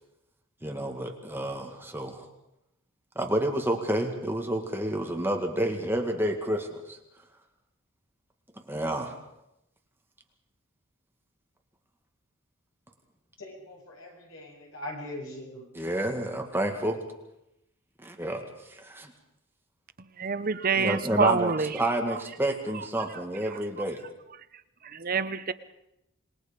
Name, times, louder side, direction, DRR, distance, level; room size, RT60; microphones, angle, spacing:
voice 1, 0.6-2.3 3.2-7.0 8.7-9.1 15.7-17.0 18.0-18.4 18.7-19.1 20.8-24.0, right 1 dB, 10° right, 2 dB, 2.0 m, -29 dB
voice 2, 13.4-15.6, left 1 dB, 75° left, 0 dB, 7.6 m, -41 dB
voice 3, 20.2-21.8 22.7-22.9 23.5-23.6 24.8-25.5, right 5 dB, 45° right, 13 dB, 0.8 m, -27 dB
27.0 x 21.0 x 5.2 m, 0.86 s
head